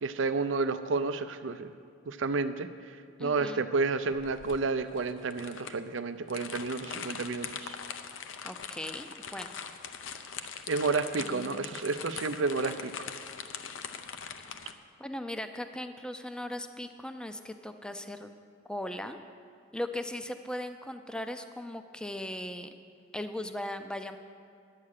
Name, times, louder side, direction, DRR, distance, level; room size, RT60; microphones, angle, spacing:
voice 1, 0.0-1.7 2.1-7.8 10.7-12.9, right 4 dB, 75° right, 11 dB, 0.5 m, -31 dB
voice 2, 3.2-3.6 8.4-9.5 11.2-11.7 15.0-18.3 18.7-19.2 19.7-22.7 23.1-24.2, left 1 dB, 5° left, 8 dB, 0.4 m, -38 dB
sound 1, 4.1-14.7, left 7 dB, 80° left, 0.6 m, -42 dB
11.0 x 8.5 x 6.5 m, 2.3 s
head